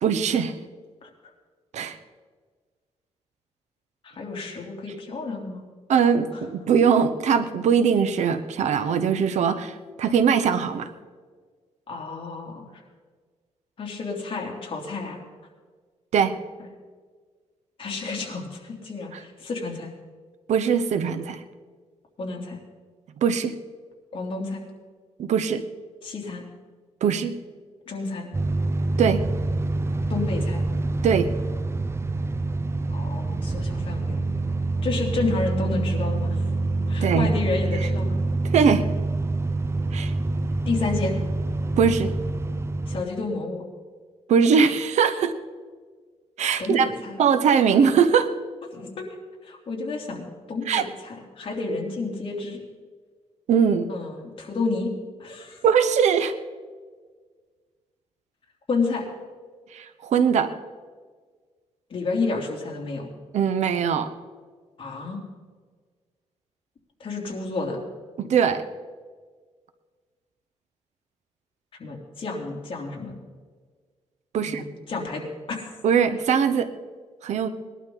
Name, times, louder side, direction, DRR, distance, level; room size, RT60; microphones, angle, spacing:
voice 1, 0.0-0.5 1.7-2.0 5.9-10.9 16.1-16.3 20.5-21.4 23.2-23.5 25.2-25.6 27.0-27.4 29.0-29.2 31.0-31.3 37.0-37.3 38.5-38.8 39.9-40.1 41.8-42.1 44.3-45.3 46.4-46.9 47.2-48.3 50.7-50.8 53.5-53.9 55.6-56.3 59.7-60.5 63.3-64.1 68.2-68.6 74.3-74.6 75.8-76.7 77.2-77.5, right 7 dB, 75° right, 11 dB, 1.0 m, -21 dB
voice 2, 4.0-5.7 6.3-6.4 11.9-12.8 13.8-15.2 17.8-19.9 22.2-22.6 24.1-24.6 26.0-26.4 27.9-28.3 30.1-30.6 32.9-34.2 34.8-36.4 36.9-38.2 40.6-41.2 42.9-43.6 46.6-47.2 48.7-49.0 49.4-52.6 53.9-54.9 55.2-55.6 58.7-59.0 61.9-63.1 64.8-65.2 67.0-67.8 71.8-73.2 74.4-75.6, left 3 dB, 50° left, 0 dB, 3.3 m, -30 dB
sound 1, 28.3-43.0, right 2 dB, 20° right, 0.6 m, -26 dB
20.5 x 11.5 x 4.0 m, 1.5 s
cardioid pair, 110°, 12 cm